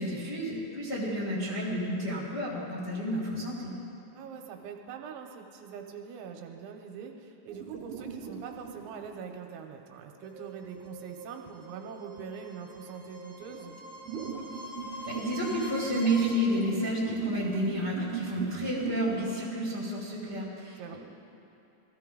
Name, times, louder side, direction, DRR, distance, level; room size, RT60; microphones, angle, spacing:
voice 1, 0.0-3.7 15.0-21.0, equal, 65° left, -7 dB, 1.0 m, -31 dB
voice 2, 4.1-13.8 20.8-21.0, right 7 dB, 85° right, 3 dB, 3.0 m, -43 dB
sound 1, 7.5-9.0 10.6-10.8 13.1-13.2 13.4-19.2, right 6 dB, 55° right, 2.4 m, -37 dB
sound 2, 10.2-16.2, equal, 30° left, 3.1 m, -45 dB
20.0 x 14.5 x 3.8 m, 2.8 s
omnidirectional pair, 5.7 m